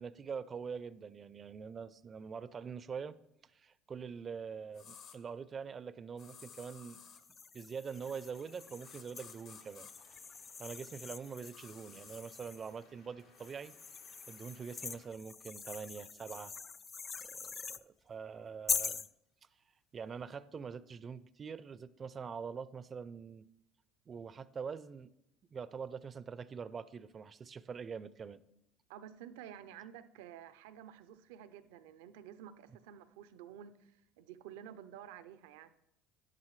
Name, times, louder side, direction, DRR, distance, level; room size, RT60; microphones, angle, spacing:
voice 1, 0.0-3.2 3.4-7.0 7.5-9.9 10.6-13.7 14.3-16.5 17.2-19.1 19.9-23.5 24.1-25.1 25.5-28.4, right 6 dB, 35° right, 17 dB, 0.5 m, -44 dB
sound 1, 4.7-5.2 6.2-7.2 8.8-9.9 11.5-12.2, left 7 dB, 60° left, 1.3 m, -54 dB
sound 2, 7.2-12.7 13.4-17.8 18.7-19.1, left 5 dB, 30° left, 0.3 m, -43 dB
Waves surf, 7.9-15.1, left 4 dB, 90° left, 3.1 m, -67 dB
voice 2, 28.9-35.7, right 10 dB, 80° right, 12 dB, 0.6 m, -51 dB
11.5 x 11.0 x 3.2 m, 0.84 s
supercardioid pair, 85°, 0 cm